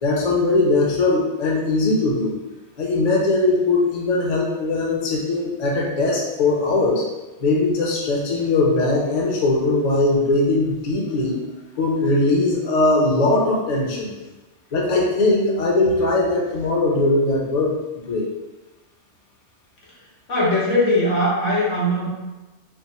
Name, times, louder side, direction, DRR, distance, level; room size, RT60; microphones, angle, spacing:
voice 1, 0.0-2.3 2.8-7.0 7.4-11.4 11.8-14.1 14.7-17.8 18.1-18.3, left 2 dB, 40° left, -2 dB, 0.7 m, -20 dB
voice 2, 20.3-22.1, left 1 dB, 85° left, -6 dB, 1.6 m, -20 dB
4.4 x 2.1 x 4.2 m, 1.1 s
omnidirectional pair, 1.2 m